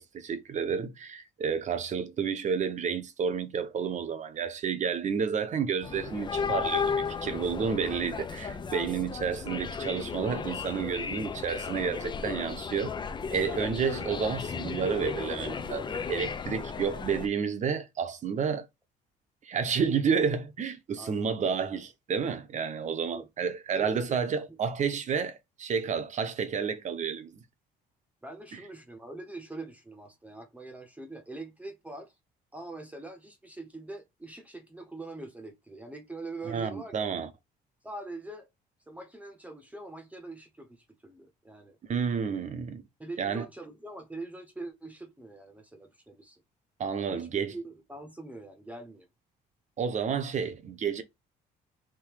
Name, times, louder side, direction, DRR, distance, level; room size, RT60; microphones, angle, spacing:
voice 1, 0.0-13.0 13.3-18.7 19.4-27.4 28.5-28.6 36.4-37.3 41.9-42.8 43.2-43.5 46.8-47.5 49.8-51.0, right 6 dB, 45° right, 1.0 m, -30 dB
sound 1, 5.8-17.3, left 6 dB, 25° left, 0.6 m, -34 dB
voice 2, 7.6-8.0 8.8-9.0 21.0-21.6 23.1-23.3 23.7-24.1 24.4-24.6 28.2-32.1 32.5-37.0 37.8-38.5 38.9-41.8 43.0-46.4 47.1-49.1, right 2 dB, 10° right, 1.1 m, -43 dB
3.7 x 3.0 x 4.7 m
cardioid pair, 110°, 17 cm